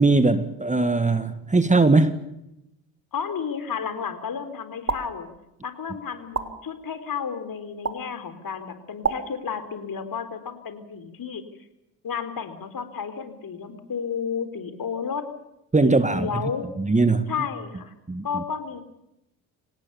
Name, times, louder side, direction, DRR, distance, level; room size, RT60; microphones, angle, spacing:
voice 1, 0.0-2.2 15.7-16.4 16.8-17.3 18.1-18.4, right 3 dB, 15° right, 11 dB, 1.8 m, -20 dB
voice 2, 3.1-5.3 5.6-11.4 12.0-15.2 15.8-16.7 17.3-17.9 18.2-18.8, left 6 dB, 45° left, 10 dB, 4.3 m, -32 dB
sound 1, 4.9-5.0 6.3-6.5 7.8-8.0 9.0-9.2, right 5 dB, 30° right, 3.5 m, -25 dB
26.0 x 19.0 x 7.1 m, 0.86 s
hypercardioid pair, 55°, 48 cm